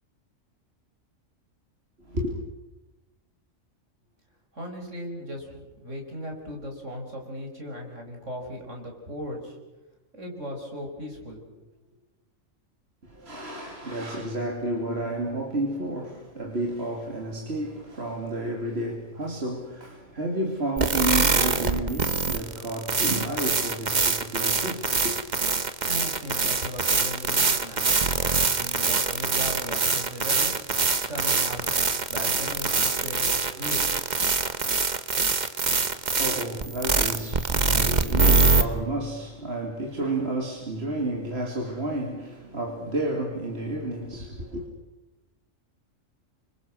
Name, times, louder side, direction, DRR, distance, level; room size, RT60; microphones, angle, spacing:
voice 1, 2.0-2.4 13.0-25.2 36.0-44.7, right 1 dB, 50° right, 2.9 m, -31 dB
voice 2, 4.5-9.6 10.1-11.7 25.9-30.5 31.0-31.8 32.1-34.0, equal, 70° right, 5.8 m, -37 dB
sound 1, 20.8-38.6, right 4 dB, 35° right, 1.3 m, -24 dB
28.5 x 25.5 x 6.4 m
omnidirectional pair, 1.3 m